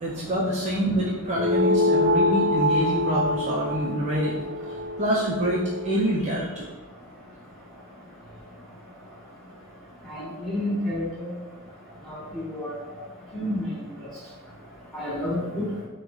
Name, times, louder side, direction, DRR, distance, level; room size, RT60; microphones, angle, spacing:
voice 1, 0.0-4.4 5.0-6.7 13.0-13.3, equal, 30° right, -5 dB, 0.4 m, -26 dB
sound 1, 1.3-6.2, left 1 dB, 90° right, 0.5 m, -25 dB
voice 2, 10.1-11.3 12.1-12.2 12.5-12.8 13.3-13.6 14.9-15.7, left 1 dB, ahead, -9 dB, 1.0 m, -29 dB
3.7 x 2.1 x 2.9 m, 1.1 s
head